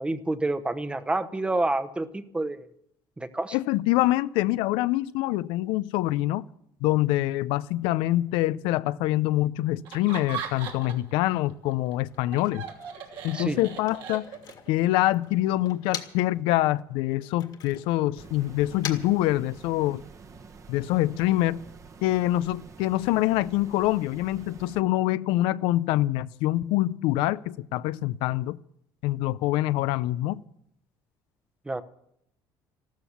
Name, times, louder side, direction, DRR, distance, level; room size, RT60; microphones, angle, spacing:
voice 1, 0.0-2.7 3.2-3.6 13.3-13.6 31.7-31.8, right 2 dB, 10° right, 0.9 m, -28 dB
voice 2, 3.5-6.4 6.8-12.6 13.2-14.2 14.7-20.0 20.7-21.6 22.0-28.6 29.0-30.4, left 16 dB, 85° left, 0.5 m, -25 dB
Laughter, 9.9-11.2 11.5-14.7, right 8 dB, 75° right, 2.8 m, -38 dB
Motor vehicle (road), 12.0-16.4 16.7-20.0, left 9 dB, 55° left, 1.9 m, -44 dB
sound 1, 18.2-24.8, right 4 dB, 40° right, 1.3 m, -48 dB
14.0 x 13.0 x 7.1 m
cardioid pair, 125°, 9 cm